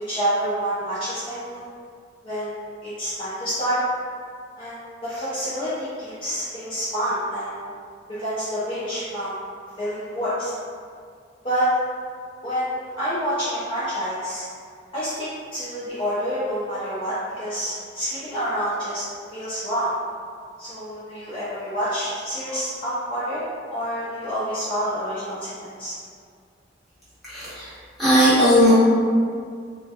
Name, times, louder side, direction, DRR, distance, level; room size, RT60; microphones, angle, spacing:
voice 1, 0.1-1.6 2.2-3.8 4.6-7.6 8.1-9.4 9.8-10.5 11.4-11.7 12.4-14.4 14.9-19.0 19.3-20.0 20.6-23.4 23.7-25.5 25.8-25.9, equal, 30° left, -12 dB, 0.5 m, -28 dB
voice 2, 27.2-27.7 28.0-28.7, equal, ahead, -15 dB, 1.1 m, -17 dB
2.2 x 2.1 x 2.7 m, 2.1 s
head